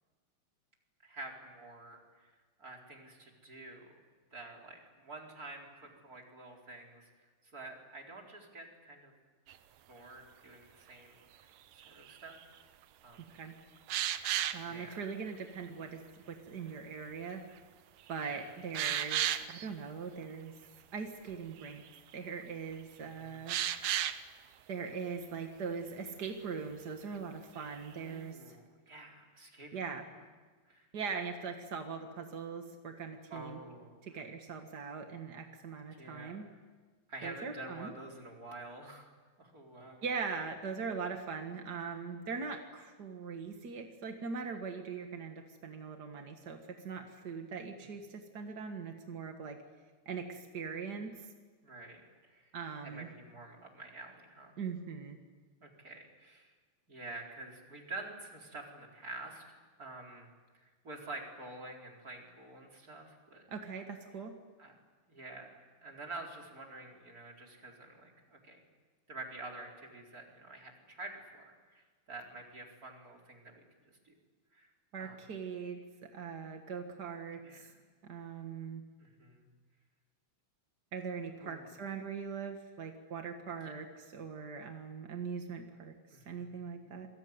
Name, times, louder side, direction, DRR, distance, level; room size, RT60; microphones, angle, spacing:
voice 1, 1.0-2.3 2.6-4.0 4.3-7.3 7.5-9.1 9.9-12.3 13.0-13.3 14.6-15.0 18.2-18.4 23.2-23.6 27.5-29.8 30.7-30.9 33.3-34.2 36.0-36.4 37.1-39.1 39.4-40.0 47.8-47.9 51.6-52.0 52.3-52.5 52.8-54.6 55.6-56.5 56.9-59.4 59.8-60.3 60.5-63.5 64.6-64.7 65.1-68.6 69.1-73.6 74.0-74.1 74.5-74.7 75.0-75.2 77.4-77.8 79.0-79.5 81.4-81.7 83.6-83.7 86.1-86.6, right 2 dB, 25° right, 0 dB, 4.4 m, -48 dB
sound 1, 9.5-9.6 11.8-12.4 13.9-14.6 17.6-17.7 18.1-18.2 18.7-19.7 21.3-21.4 21.6-22.0 23.5-24.2 27.6-27.9, right 11 dB, 70° right, 1.7 m, -33 dB
voice 2, 14.5-16.0 16.3-17.4 18.1-20.5 20.9-21.8 22.1-23.6 24.7-28.6 29.7-30.1 30.9-33.6 34.0-36.5 37.2-37.9 40.0-49.6 50.0-51.3 52.5-53.1 54.6-55.2 63.5-64.4 74.9-77.7 78.0-78.8 80.9-85.9 86.2-87.1, right 5 dB, 50° right, 4 dB, 1.2 m, -41 dB
28.0 x 22.5 x 9.6 m, 1.4 s
omnidirectional pair, 4.3 m